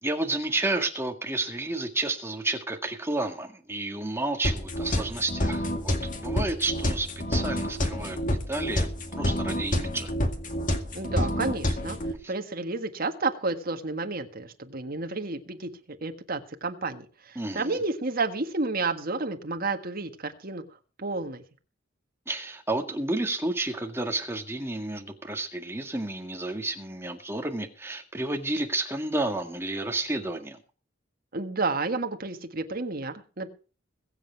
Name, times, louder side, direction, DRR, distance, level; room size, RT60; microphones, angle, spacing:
voice 1, 0.0-10.1 12.2-12.3 17.4-17.8 22.3-30.6, right 2 dB, 15° right, 4 dB, 2.0 m, -31 dB
sound 1, 4.4-12.1, left 1 dB, 45° left, 2.1 m, -28 dB
voice 2, 10.9-12.0 12.3-20.6 21.0-21.4 31.3-33.5, right 3 dB, 50° right, 6 dB, 1.7 m, -31 dB
22.0 x 8.0 x 4.6 m, 0.37 s
head